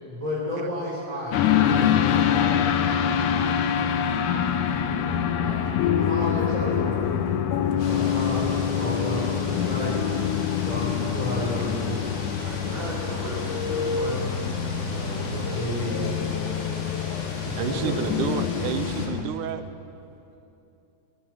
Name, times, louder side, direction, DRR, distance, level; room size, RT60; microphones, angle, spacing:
voice 1, 0.0-4.2 5.4-5.7 6.0-7.3 7.7-10.0 10.6-12.1 14.8-16.0 17.5-18.1, equal, 10° right, -7 dB, 3.3 m, -32 dB
sound 1, 1.3-19.2, left 8 dB, 70° left, 2.1 m, -25 dB
sound 2, 7.8-19.1, left 2 dB, 45° left, 3.2 m, -38 dB
voice 2, 12.4-14.2 17.5-17.7, right 1 dB, 50° right, -9 dB, 6.5 m, -35 dB
voice 3, 17.6-19.6, right 9 dB, 75° right, 11 dB, 2.0 m, -30 dB
26.0 x 17.5 x 6.1 m, 2.8 s
omnidirectional pair, 4.3 m